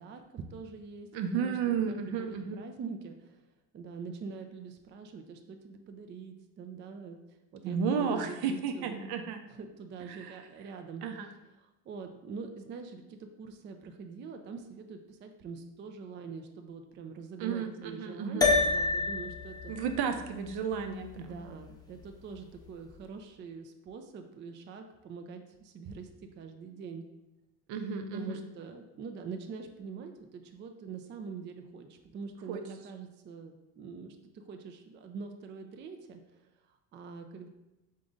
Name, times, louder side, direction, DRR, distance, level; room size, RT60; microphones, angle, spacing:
voice 1, 0.0-1.1 1.3-3.4 3.7-9.1 9.5-11.0 11.5-19.7 21.2-26.1 26.4-27.0 28.1-36.4 36.7-37.5, right 5 dB, 25° right, 6 dB, 0.4 m, -44 dB
voice 2, 1.1-2.6 7.6-9.4 10.1-10.4 11.0-11.3 17.4-18.5 19.7-21.4 27.7-28.4 32.5-32.6, right 6 dB, 60° right, 6 dB, 0.7 m, -33 dB
sound 1, 18.4-23.0, left 3 dB, 10° left, 0.7 m, -31 dB
3.9 x 3.7 x 3.7 m, 0.97 s
supercardioid pair, 85°, 43 cm